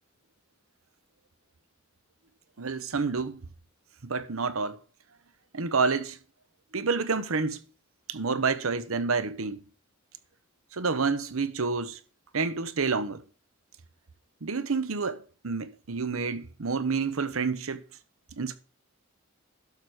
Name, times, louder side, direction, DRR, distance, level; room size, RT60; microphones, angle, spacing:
voice 1, 2.6-3.4 4.0-4.8 5.5-6.2 6.7-7.6 8.1-9.6 10.7-12.0 12.3-13.2 14.4-17.8 18.4-18.6, right 4 dB, 80° right, 0.9 m, -29 dB
11.5 x 4.9 x 6.3 m
head